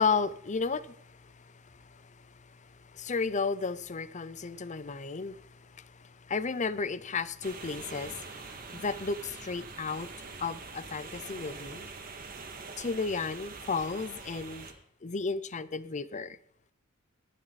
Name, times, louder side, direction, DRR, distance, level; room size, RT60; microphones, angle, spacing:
voice 1, 0.0-10.1 10.4-11.9 12.8-14.7 15.0-16.4, left 4 dB, 35° left, 17 dB, 0.6 m, -34 dB
sound 1, 7.4-14.7, right 4 dB, 45° right, 2.2 m, -44 dB
19.0 x 11.0 x 4.1 m, 0.71 s
head